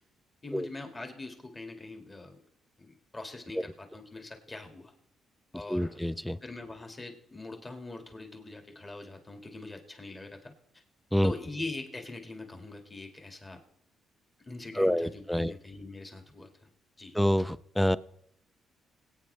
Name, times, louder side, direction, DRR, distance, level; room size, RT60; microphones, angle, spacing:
voice 1, 0.4-2.4 2.8-4.9 5.5-6.0 6.4-10.8 11.2-13.6 14.4-16.5 17.0-17.2, left 2 dB, 25° left, 4 dB, 2.1 m, -43 dB
voice 2, 5.7-6.4 11.1-11.3 14.8-15.5 17.1-18.0, equal, 5° left, 16 dB, 0.5 m, -27 dB
20.5 x 9.0 x 3.4 m, 0.72 s
cardioid pair, 90°, 0 cm